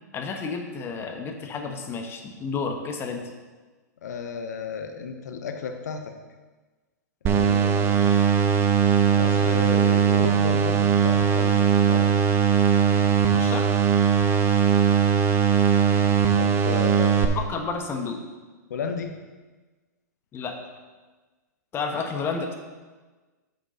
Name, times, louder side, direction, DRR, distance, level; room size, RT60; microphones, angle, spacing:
voice 1, 0.1-3.2 13.3-13.7 17.3-18.2 20.3-20.5 21.7-22.6, left 5 dB, 25° left, 3 dB, 1.2 m, -31 dB
voice 2, 4.0-6.1 7.2-8.2 9.1-12.1 16.4-17.4 18.7-19.1 21.9-22.0, left 6 dB, 65° left, 5 dB, 1.1 m, -33 dB
sound 1, 7.3-17.3, right 7 dB, 25° right, 0.9 m, -20 dB
9.2 x 6.5 x 3.8 m, 1.3 s
figure-of-eight pair, 105°, 10 cm